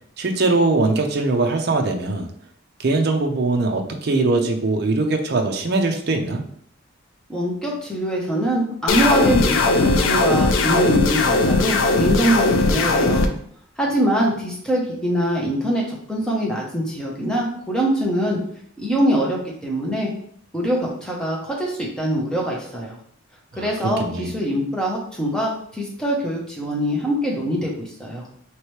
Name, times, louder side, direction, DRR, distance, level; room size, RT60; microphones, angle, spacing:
voice 1, 0.2-2.3 2.8-6.4 23.5-23.7 24.0-24.3, right 3 dB, 50° right, 4 dB, 0.5 m, -21 dB
voice 2, 7.3-13.3 13.8-18.4 18.8-20.1 20.5-22.9 23.6-28.3, equal, 5° left, -3 dB, 0.7 m, -23 dB
sound 1, 8.9-13.3, left 3 dB, 60° left, 0.4 m, -18 dB
3.2 x 3.0 x 3.1 m, 0.63 s
head